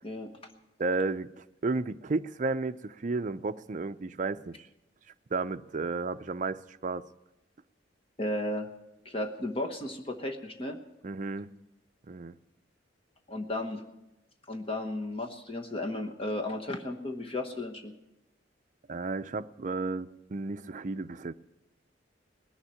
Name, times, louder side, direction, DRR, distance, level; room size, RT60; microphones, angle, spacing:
voice 1, 0.8-1.3 1.6-4.7 5.3-7.1 11.0-11.5 12.1-12.4 18.9-21.3, right 3 dB, 45° right, 0.5 m, -32 dB
voice 2, 8.2-8.7 9.0-10.8 13.3-13.8 14.5-17.9, left 1 dB, 30° left, 1.1 m, -34 dB
19.0 x 7.3 x 9.5 m
head